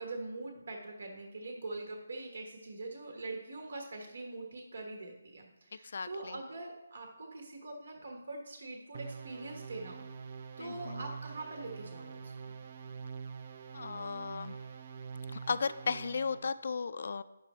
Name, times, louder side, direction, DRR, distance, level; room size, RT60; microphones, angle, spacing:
voice 1, 0.0-10.0 10.6-12.3, right 2 dB, 70° right, 2 dB, 1.2 m, -43 dB
voice 2, 5.7-6.4 10.6-11.0 13.7-14.6 15.3-17.2, left 5 dB, 55° left, 14 dB, 0.3 m, -36 dB
sound 1, 8.9-16.5, right 6 dB, 35° right, 0.5 m, -45 dB
10.0 x 6.5 x 3.1 m, 1.0 s
hypercardioid pair, 165°, 0 cm